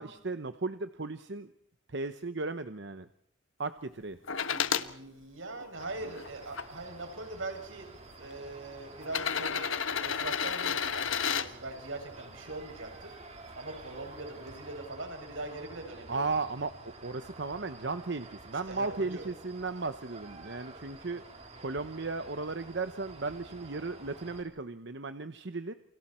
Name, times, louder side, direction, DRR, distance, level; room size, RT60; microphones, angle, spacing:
voice 1, 0.0-1.5 1.9-3.1 3.6-4.2 16.1-25.7, right 3 dB, 60° right, 10 dB, 0.9 m, -36 dB
sound 1, 4.3-4.9 5.6-6.6 7.6-7.7 9.0-11.5 13.4-13.5, left 7 dB, 85° left, 1.4 m, -31 dB
voice 2, 4.5-9.7 10.0-13.2 13.5-16.4 18.7-19.3, right 2 dB, 85° right, 4 dB, 7.1 m, -42 dB
sound 2, 5.8-24.4, right 2 dB, 35° right, 4.1 m, -50 dB
30.0 x 28.0 x 4.4 m, 0.69 s
head